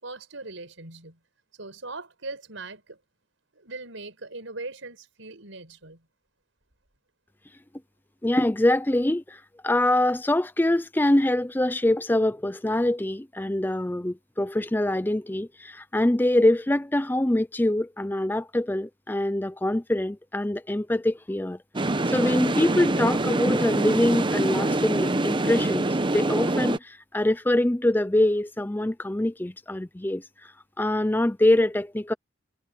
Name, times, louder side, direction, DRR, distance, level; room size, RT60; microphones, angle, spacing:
voice 1, 0.0-1.2 1.6-3.0 3.5-6.1, right 3 dB, 85° right, 5.3 m, -40 dB
voice 2, 8.2-21.6 22.1-25.9 26.1-30.2 30.8-32.1, left 1 dB, 10° left, 0.5 m, -24 dB
sound 1, 21.7-26.8, right 2 dB, 25° right, 0.8 m, -25 dB
head